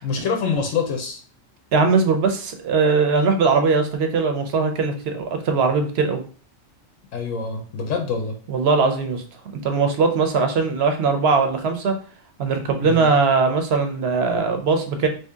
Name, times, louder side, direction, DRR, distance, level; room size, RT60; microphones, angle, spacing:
voice 1, 0.0-1.2 7.1-8.4 12.8-13.1, left 5 dB, 85° left, 3 dB, 1.1 m, -25 dB
voice 2, 1.7-6.2 8.5-9.2 9.6-11.9 12.4-15.1, right 4 dB, 60° right, 5 dB, 0.8 m, -20 dB
3.0 x 2.7 x 3.5 m, 0.40 s
omnidirectional pair, 1.3 m